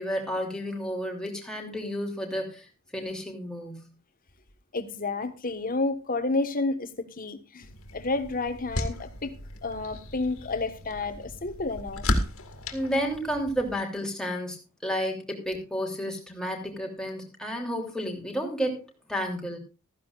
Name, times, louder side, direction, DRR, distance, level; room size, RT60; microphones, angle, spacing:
voice 1, 0.0-2.7 2.9-3.9 12.7-19.6, equal, 5° left, 3.0 m, -31 dB
voice 2, 4.7-9.3 9.6-12.0, left 3 dB, 40° left, 1.5 m, -30 dB
sound 1, 7.6-13.8, left 1 dB, 70° left, 2.3 m, -34 dB
15.5 x 14.0 x 2.5 m
head